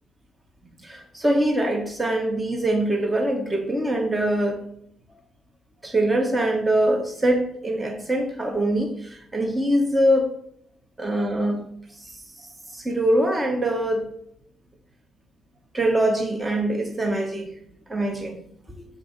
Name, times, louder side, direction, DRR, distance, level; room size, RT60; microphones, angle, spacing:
voice 1, 0.8-4.6 5.8-10.3 11.0-11.6 12.0-14.1 15.7-17.5 17.9-18.4 18.8-18.9, right 1 dB, 15° right, 3 dB, 1.0 m, -23 dB
6.8 x 3.8 x 5.1 m, 0.69 s
cardioid pair, 90°, 0 cm